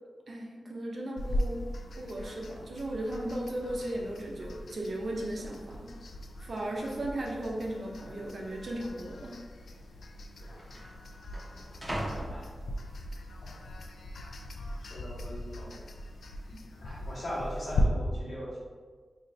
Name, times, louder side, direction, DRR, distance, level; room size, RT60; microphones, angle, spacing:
voice 1, 0.3-1.7 2.0-5.9 6.4-9.4 16.5-16.6, right 1 dB, 55° right, -1 dB, 0.5 m, -36 dB
sound 1, 1.2-17.8, left 2 dB, 80° left, 0.3 m, -40 dB
sound 2, 4.8-5.2 5.9-6.0 6.7-7.2 7.5-7.6 8.5-8.7 9.7-9.8 10.0-13.2 13.7-14.1, right 1 dB, 15° right, 0.7 m, -41 dB
voice 2, 14.9-15.9 16.8-18.6, equal, 60° left, -5 dB, 1.1 m, -39 dB
3.9 x 2.6 x 3.1 m, 1.5 s
wide cardioid pair, 130°, 0 cm